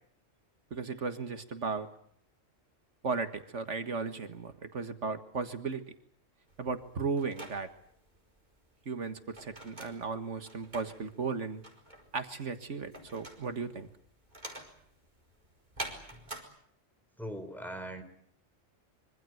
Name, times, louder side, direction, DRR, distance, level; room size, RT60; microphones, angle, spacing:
voice 1, 0.7-1.9 3.0-5.9 6.6-7.7 8.9-11.6 12.1-13.9, right 4 dB, 70° right, 8 dB, 1.9 m, -35 dB
sound 1, 6.5-16.4, right 1 dB, 35° right, 5.0 m, -47 dB
voice 2, 17.2-18.0, equal, ahead, 6 dB, 4.1 m, -41 dB
25.5 x 25.0 x 7.8 m, 0.65 s
omnidirectional pair, 1.3 m